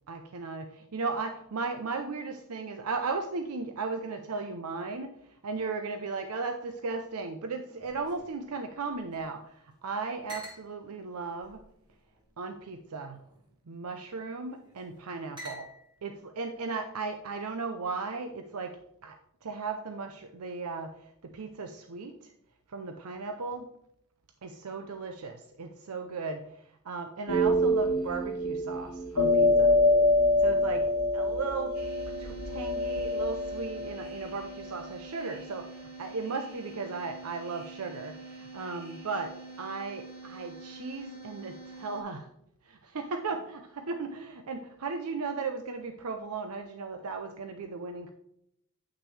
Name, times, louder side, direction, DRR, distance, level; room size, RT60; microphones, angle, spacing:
voice 1, 0.1-5.1 5.4-11.6 12.4-13.2 13.7-15.7 16.0-18.8 19.0-19.2 19.4-20.9 21.2-22.3 22.7-23.7 24.4-26.5 26.8-29.8 30.4-31.7 32.2-42.3 42.6-48.1, right 4 dB, 90° right, 6 dB, 0.6 m, -36 dB
sound 1, 7.8-9.4 9.7-9.8 10.3-10.7 11.4-12.3 13.1-13.5 14.4-14.8 15.4-16.0, equal, 20° right, 1.9 m, -48 dB
sound 2, 27.3-34.4, left 1 dB, 80° left, 1.1 m, -26 dB
sound 3, 31.7-42.0, right 3 dB, 45° right, 2.5 m, -46 dB
8.9 x 6.0 x 3.2 m, 0.73 s
head